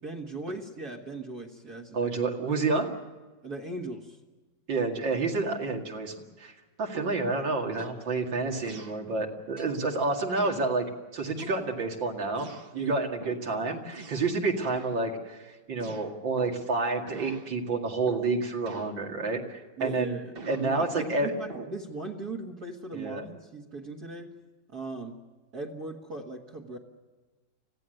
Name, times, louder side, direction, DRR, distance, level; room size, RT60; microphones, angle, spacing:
voice 1, 0.0-2.0 3.4-4.2 12.7-13.0 19.8-20.3 20.6-24.3 24.7-25.2 25.5-26.8, right 2 dB, 55° right, -1 dB, 2.2 m, -38 dB
voice 2, 1.9-2.9 4.7-6.5 6.8-10.9 11.1-12.5 12.7-20.2 20.5-21.3 22.9-23.2, right 3 dB, 75° right, 2 dB, 3.0 m, -29 dB
sound 1, 6.9-7.3 7.8-8.0 8.7-9.0 9.6-9.8 10.4-10.7 11.4-11.9 12.4-12.7 13.2-13.5 13.9-14.4 14.6-15.0 15.8-16.7 17.1-17.5 18.1-18.4 18.7-19.0 19.8-20.7 21.5-21.8, right 2 dB, 30° right, 1.4 m, -43 dB
25.5 x 16.0 x 7.8 m, 1.3 s
omnidirectional pair, 2.1 m